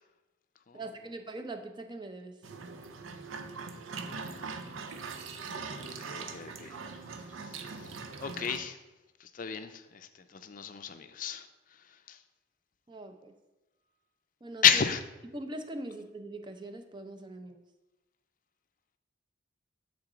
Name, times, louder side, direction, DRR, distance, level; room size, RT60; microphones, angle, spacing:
voice 1, 0.7-2.4 12.9-13.3 14.4-14.8 15.3-17.6, right 2 dB, 25° right, 7 dB, 0.5 m, -42 dB
sound 1, 2.4-8.6, right 4 dB, 85° right, 0.6 m, -41 dB
voice 2, 5.7-8.8 9.2-12.2 14.6-15.0, left 8 dB, 45° left, 9 dB, 0.5 m, -32 dB
7.6 x 3.8 x 4.9 m, 1.1 s
head